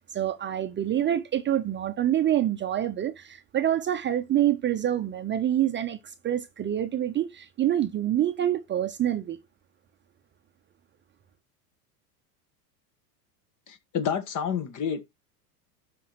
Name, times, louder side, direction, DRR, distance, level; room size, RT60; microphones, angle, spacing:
voice 1, 0.0-9.4, right 11 dB, 25° right, 0.7 m, -26 dB
voice 2, 13.7-15.0, left 7 dB, 40° left, 1.6 m, -29 dB
12.5 x 5.3 x 3.0 m
hypercardioid pair, 105°, 48 cm